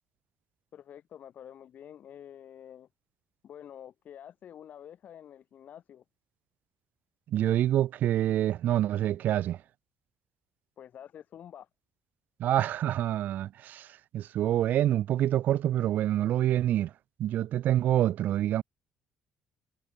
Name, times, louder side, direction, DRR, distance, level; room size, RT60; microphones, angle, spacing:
voice 1, 0.7-2.9 3.4-6.0 10.8-11.7, left 9 dB, 60° left, 2.6 m, -48 dB
voice 2, 7.3-9.6 12.4-13.9 14.1-16.9 17.2-18.6, right 12 dB, 70° right, 0.5 m, -26 dB
supercardioid pair, 70°, 3 cm